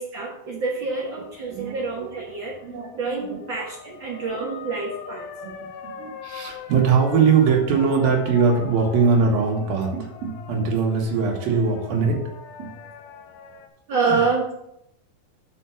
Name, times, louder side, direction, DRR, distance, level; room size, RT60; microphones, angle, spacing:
voice 1, 0.0-2.6 2.9-5.3 13.9-14.5, right 4 dB, 85° right, -3 dB, 1.0 m, -27 dB
sound 1, 0.9-13.7, left 6 dB, 75° left, 2.1 m, -41 dB
voice 2, 1.5-2.2 2.6-3.4 5.4-5.7 6.0-12.2 12.6-12.7 14.1-14.2, right 5 dB, 70° right, 0 dB, 3.3 m, -21 dB
6.4 x 5.6 x 7.1 m, 0.78 s
omnidirectional pair, 4.3 m